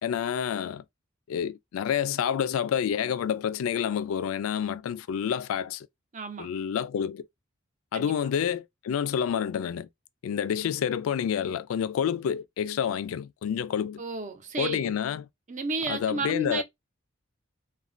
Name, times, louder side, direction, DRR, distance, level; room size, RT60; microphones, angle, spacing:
voice 1, 0.0-0.8 1.3-5.9 6.4-7.3 7.9-9.9 10.2-14.0 14.6-15.3 15.9-16.6, left 8 dB, 90° left, 0.3 m, -28 dB
voice 2, 6.1-6.5 7.9-8.1 14.0-15.0 15.5-16.6, right 3 dB, 35° right, 0.6 m, -32 dB
3.1 x 2.2 x 2.4 m
head